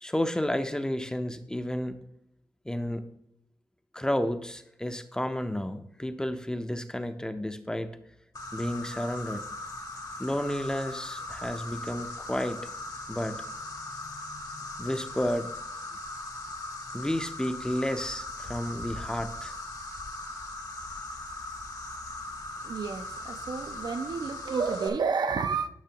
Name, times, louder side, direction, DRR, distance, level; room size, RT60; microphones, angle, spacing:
voice 1, 0.0-2.0 2.7-3.0 3.9-8.0 8.5-9.4 10.2-12.7 13.1-13.4 14.8-15.5 16.9-19.5, left 1 dB, 10° left, 0.5 m, -31 dB
Insect, 8.4-24.9, left 2 dB, 60° left, 1.1 m, -39 dB
voice 2, 22.6-25.7, right 5 dB, 65° right, 0.6 m, -30 dB
10.5 x 6.0 x 2.9 m
wide cardioid pair, 90°, 8 cm